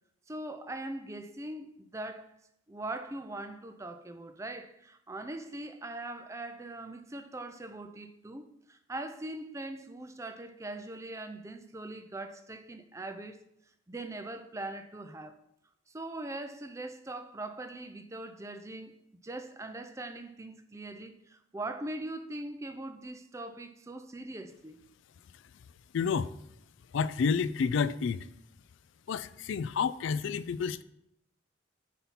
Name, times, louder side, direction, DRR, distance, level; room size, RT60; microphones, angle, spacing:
voice 1, 0.3-2.4 2.7-13.4 13.9-15.4 15.9-18.9 19.2-24.9, right 2 dB, 15° right, 0.4 m, -41 dB
voice 2, 25.9-26.3 26.9-28.3 29.1-30.8, left 5 dB, 70° left, 0.3 m, -29 dB
5.4 x 4.2 x 5.8 m
head